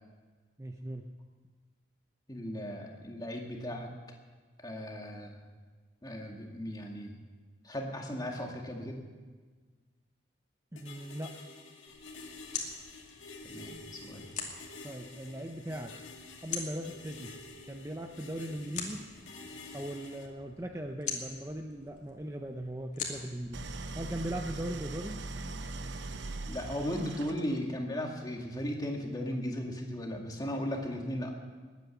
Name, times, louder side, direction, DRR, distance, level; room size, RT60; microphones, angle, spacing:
voice 1, 0.6-1.1 10.7-11.3 14.8-15.9 16.4-17.3 17.7-19.0 19.7-23.6 23.9-25.2, right 1 dB, 15° right, 4 dB, 0.6 m, -39 dB
voice 2, 2.3-3.9 4.6-5.4 6.0-7.2 7.6-9.0 13.4-14.3 26.4-31.3, equal, 20° left, 1 dB, 2.0 m, -36 dB
sound 1, 10.8-20.3, left 3 dB, 90° left, 2.0 m, -49 dB
sound 2, 11.9-24.6, left 5 dB, 40° left, 2.4 m, -44 dB
Idling, 23.5-27.7, right 2 dB, 70° right, 0.8 m, -40 dB
21.0 x 9.4 x 7.0 m, 1.4 s
head